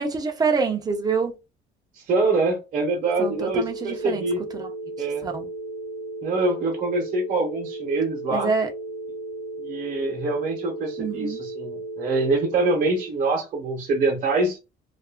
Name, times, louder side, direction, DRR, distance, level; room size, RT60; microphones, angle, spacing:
voice 1, 0.0-1.3 3.2-4.2 4.5-4.7 5.2-5.5 8.3-8.7 11.0-11.4, right 5 dB, 25° right, 0.6 m, -26 dB
voice 2, 2.1-4.4 5.0-5.3 6.2-8.5 9.6-14.6, right 3 dB, 50° right, 0.9 m, -24 dB
sound 1, 3.0-13.0, right 2 dB, 35° left, 0.8 m, -35 dB
2.5 x 2.4 x 2.3 m
cardioid pair, 110°, 17 cm